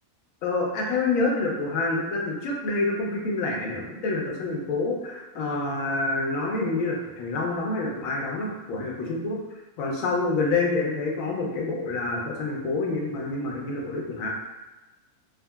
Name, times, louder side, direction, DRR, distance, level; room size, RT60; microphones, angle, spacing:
voice 1, 0.4-9.4 9.8-14.3, left 3 dB, 70° left, -1 dB, 0.9 m, -27 dB
3.5 x 2.1 x 2.2 m, 1.1 s
omnidirectional pair, 1.5 m